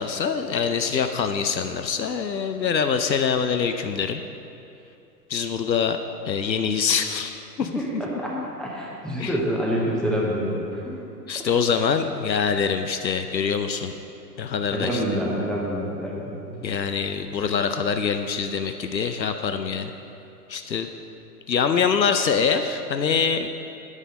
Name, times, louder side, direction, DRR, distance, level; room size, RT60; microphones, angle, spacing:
voice 1, 0.0-4.2 5.3-6.0 6.3-7.7 8.3-8.5 9.2-9.3 11.3-13.9 14.4-15.0 16.6-19.9 20.5-20.9 21.5-23.5, left 6 dB, 90° left, 7 dB, 0.7 m, -24 dB
voice 2, 7.6-8.3 8.6-11.0 11.3-11.4 14.7-16.7, equal, ahead, -4 dB, 0.7 m, -27 dB
9.8 x 8.5 x 5.3 m, 2.8 s
figure-of-eight pair, 110°, 50 cm